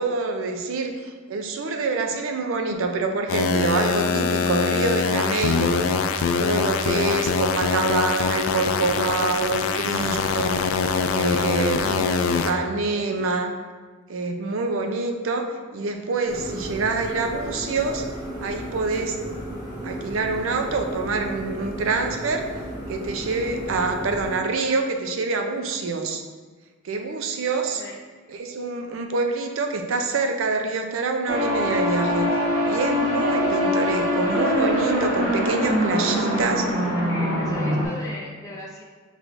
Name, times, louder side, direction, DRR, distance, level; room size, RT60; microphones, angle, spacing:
voice 1, 0.0-5.8 6.4-10.6 11.1-13.5 14.1-18.0 18.4-19.2 19.8-22.5 22.9-26.2 26.8-27.8 28.3-32.3 32.7-36.7, right 3 dB, 70° right, 5 dB, 0.5 m, -26 dB
sound 1, 3.3-12.5, left 5 dB, 75° left, 0.3 m, -23 dB
voice 2, 12.8-13.2 23.4-23.9 27.7-27.9 36.2-38.8, left 2 dB, 15° left, -4 dB, 0.5 m, -38 dB
sound 2, 16.3-24.4, equal, 20° right, 1.2 m, -34 dB
sound 3, 31.3-37.9, left 1 dB, 50° right, 1.3 m, -23 dB
6.2 x 3.2 x 2.5 m, 1.4 s
head